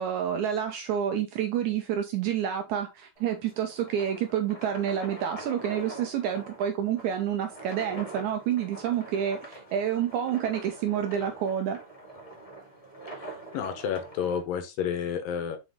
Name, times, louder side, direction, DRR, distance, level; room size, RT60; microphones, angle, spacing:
voice 1, 0.0-11.8, right 9 dB, 80° right, 1.8 m, -29 dB
sound 1, 3.1-14.4, right 2 dB, 10° left, 2.0 m, -44 dB
voice 2, 13.1-15.6, left 8 dB, 75° left, 2.6 m, -31 dB
6.2 x 4.9 x 3.6 m
omnidirectional pair, 4.1 m